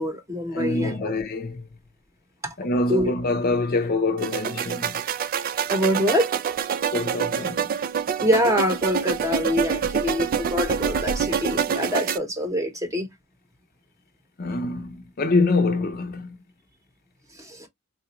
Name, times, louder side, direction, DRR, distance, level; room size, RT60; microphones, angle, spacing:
voice 1, 0.0-1.1 2.4-2.5 2.9-3.1 5.7-6.3 8.2-13.1 17.3-17.7, equal, 15° right, 0.9 m, -25 dB
voice 2, 0.5-1.6 2.6-5.0 6.9-7.7 14.4-16.4, left 3 dB, 45° left, 0.6 m, -25 dB
sound 1, 4.2-12.2, right 7 dB, 40° right, 0.3 m, -26 dB
4.0 x 2.4 x 2.9 m
head